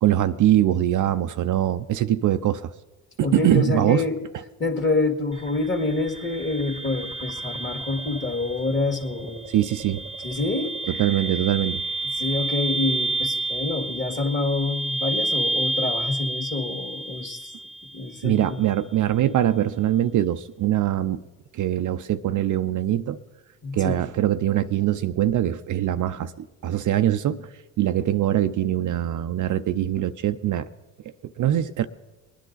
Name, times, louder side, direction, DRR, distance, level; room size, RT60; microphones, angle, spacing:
voice 1, 0.0-2.7 3.2-4.0 9.5-10.0 10.9-11.8 18.2-21.2 21.5-23.2 23.7-27.5 27.8-30.7 31.4-31.9, right 12 dB, 50° right, 10 dB, 0.6 m, -23 dB
voice 2, 3.2-4.2 4.6-9.6 10.2-10.7 12.1-17.5 17.9-18.6 23.6-24.0, left 3 dB, 30° left, 5 dB, 1.9 m, -27 dB
sound 1, 5.3-18.3, right 2 dB, 15° right, 0.9 m, -30 dB
20.0 x 10.0 x 4.0 m, 1.2 s
supercardioid pair, 70°, 40 cm